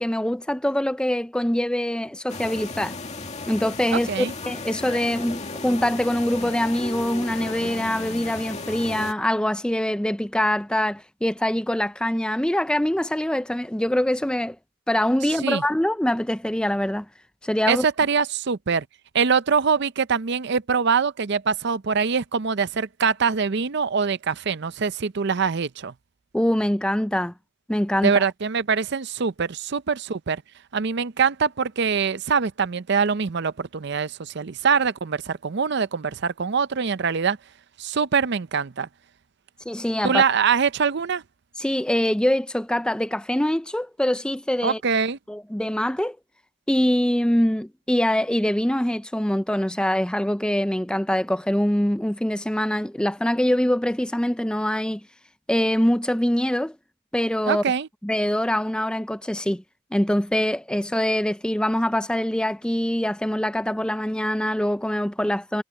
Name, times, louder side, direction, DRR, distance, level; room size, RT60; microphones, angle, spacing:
voice 1, 0.0-2.9 3.5-14.6 14.9-17.1 17.4-17.9 26.3-27.3 27.7-28.2 39.7-40.2 41.6-44.8 45.3-46.2 46.7-55.0 55.5-56.8 57.1-57.6 58.0-59.6 59.9-65.6, left 1 dB, 5° left, 0.4 m, -24 dB
sound 1, 2.3-9.1, left 3 dB, 30° left, 2.4 m, -35 dB
voice 2, 3.9-4.3 15.4-15.6 17.7-18.8 19.1-25.9 28.0-30.4 30.7-37.4 37.8-38.9 40.0-41.2 44.6-45.2 57.5-57.9, right 6 dB, 55° right, 0.6 m, -23 dB
head